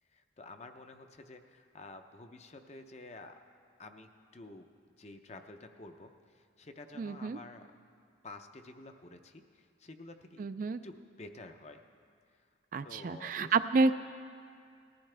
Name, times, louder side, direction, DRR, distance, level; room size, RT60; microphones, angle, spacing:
voice 1, 0.1-3.4 3.8-4.7 5.0-7.7 8.2-10.5 10.8-11.8 12.8-13.6, left 2 dB, 35° left, 6 dB, 0.6 m, -50 dB
voice 2, 7.0-7.4 10.4-10.8 12.7-13.9, right 4 dB, 45° right, 11 dB, 0.3 m, -29 dB
19.0 x 14.0 x 3.3 m, 2.3 s
head